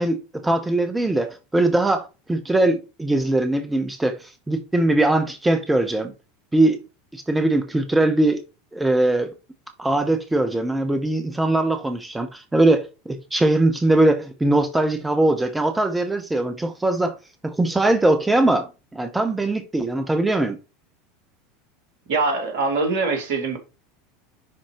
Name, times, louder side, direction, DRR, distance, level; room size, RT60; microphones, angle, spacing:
voice 1, 0.0-6.1 6.5-6.8 7.1-8.4 8.7-9.3 9.8-17.1 17.4-20.6, right 2 dB, 10° right, 0.9 m, -21 dB
voice 2, 22.1-23.6, right 3 dB, 55° right, 2.4 m, -23 dB
10.5 x 4.4 x 3.1 m
figure-of-eight pair, 80°, 0 cm